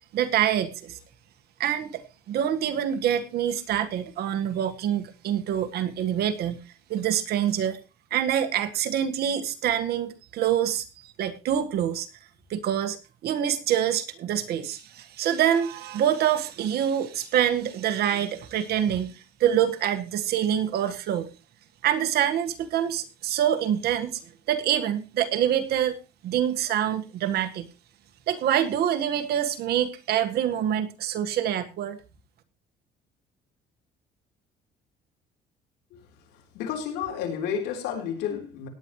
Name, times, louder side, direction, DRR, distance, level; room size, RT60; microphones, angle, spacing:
voice 1, 0.1-1.0 1.6-2.0 2.3-6.6 6.9-7.8 8.1-12.1 12.5-13.0 13.2-21.3 21.8-24.2 24.5-26.0 26.2-27.7 28.3-32.0, right 10 dB, 70° right, 1.7 m, -26 dB
voice 2, 36.5-38.7, left 8 dB, 90° left, 3.9 m, -31 dB
17.5 x 10.0 x 3.2 m
cardioid pair, 110°, 17 cm